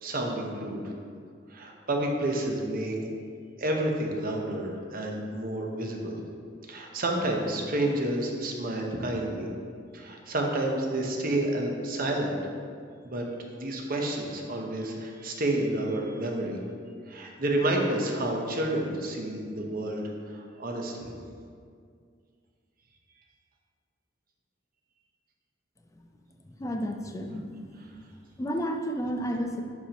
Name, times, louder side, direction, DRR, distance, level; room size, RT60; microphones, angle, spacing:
voice 1, 0.0-0.9 1.5-2.9 3.6-6.2 6.7-9.5 9.9-12.3 13.0-13.3 13.5-16.6 17.1-20.0 20.3-21.1, right 1 dB, 50° right, 1 dB, 0.9 m, -30 dB
voice 2, 26.5-27.9 28.4-29.6, equal, 15° left, 3 dB, 0.5 m, -32 dB
10.5 x 4.4 x 3.0 m, 2.2 s
head